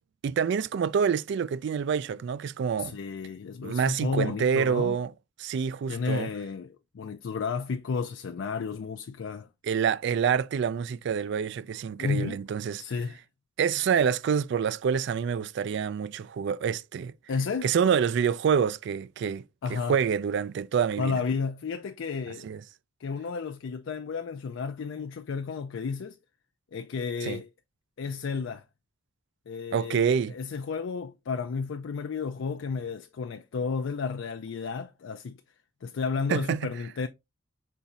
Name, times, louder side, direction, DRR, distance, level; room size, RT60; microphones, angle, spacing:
voice 1, 0.2-3.0 3.6-5.1 5.4-6.3 9.6-12.8 13.6-17.1 17.6-19.4 19.7-21.2 22.4-22.6 27.2-27.4 29.7-30.3 36.3-36.6, right 7 dB, 60° right, 0.3 m, -27 dB
voice 2, 2.8-5.0 5.9-9.5 12.0-12.4 12.8-13.2 17.3-17.7 19.6-20.0 21.0-22.5 23.0-26.2 26.7-27.5 28.0-28.6 29.5-35.4 35.8-37.1, left 5 dB, 70° left, 0.4 m, -32 dB
5.6 x 4.0 x 2.4 m
head